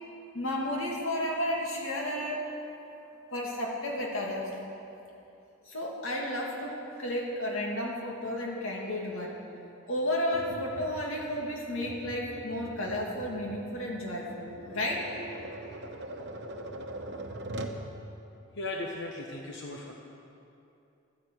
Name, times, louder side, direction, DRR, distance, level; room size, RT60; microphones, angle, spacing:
voice 1, 0.3-2.4 3.3-4.5 5.7-9.4 9.9-15.0, left 1 dB, 70° left, -1 dB, 2.5 m, -32 dB
Tap, 10.3-17.8, right 1 dB, 50° right, 1.0 m, -42 dB
voice 2, 18.5-19.9, left 2 dB, 55° left, 0 dB, 1.0 m, -37 dB
12.5 x 10.5 x 8.0 m, 2.8 s
head